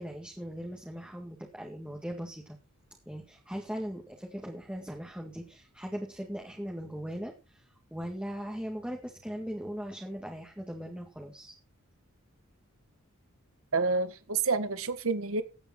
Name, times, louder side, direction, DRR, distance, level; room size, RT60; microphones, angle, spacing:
voice 1, 0.0-2.6 3.1-11.5, equal, 5° right, 0 dB, 1.9 m, -39 dB
voice 2, 13.7-15.4, right 4 dB, 70° right, 12 dB, 1.7 m, -28 dB
16.0 x 8.8 x 4.4 m, 0.31 s
head